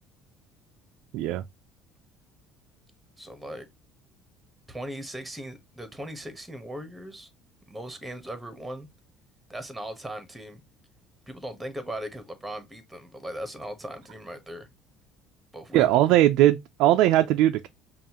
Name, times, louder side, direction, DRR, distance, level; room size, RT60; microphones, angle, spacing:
voice 1, 1.1-1.4 15.7-17.7, right 13 dB, 75° right, 0.3 m, -20 dB
voice 2, 3.2-3.7 4.7-7.3 7.7-8.9 9.5-10.6 11.3-14.7 15.5-16.2, right 1 dB, 5° right, 1.1 m, -38 dB
5.4 x 2.4 x 2.9 m
cardioid pair, 125°, 0 cm